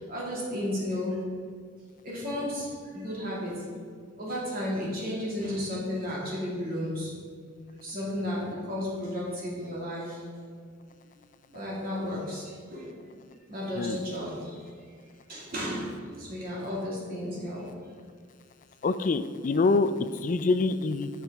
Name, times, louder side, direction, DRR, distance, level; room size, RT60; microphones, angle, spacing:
voice 1, 0.1-1.2 2.0-2.7 2.9-3.5 4.2-7.1 7.8-10.2 11.5-12.4 12.7-12.9 13.5-14.4 15.3-15.9 16.2-17.6, left 1 dB, 45° right, -5 dB, 2.2 m, -33 dB
voice 2, 18.8-21.1, left 3 dB, 40° left, 12 dB, 0.4 m, -25 dB
11.5 x 6.0 x 3.5 m, 2.1 s
head